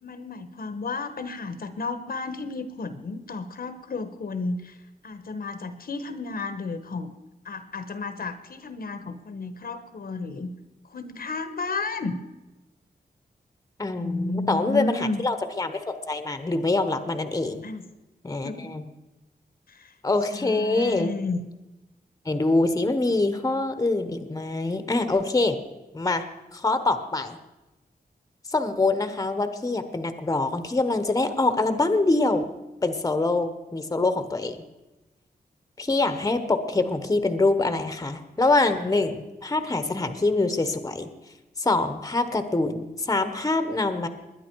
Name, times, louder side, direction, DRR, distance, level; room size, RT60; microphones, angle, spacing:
voice 1, 0.0-4.8 5.0-7.1 7.4-10.5 10.8-12.2 14.0-15.2 17.6-17.9 18.4-18.7 19.7-19.9 20.3-21.5, left 3 dB, 65° left, 10 dB, 1.0 m, -32 dB
voice 2, 13.8-17.6 18.2-18.8 20.0-21.1 22.3-25.6 25.9-26.2 26.5-27.4 28.5-32.4 32.8-34.6 35.8-41.1 41.6-44.1, left 2 dB, 20° left, 9 dB, 1.0 m, -24 dB
21.0 x 10.0 x 4.6 m, 1.0 s
wide cardioid pair, 130°, 17 cm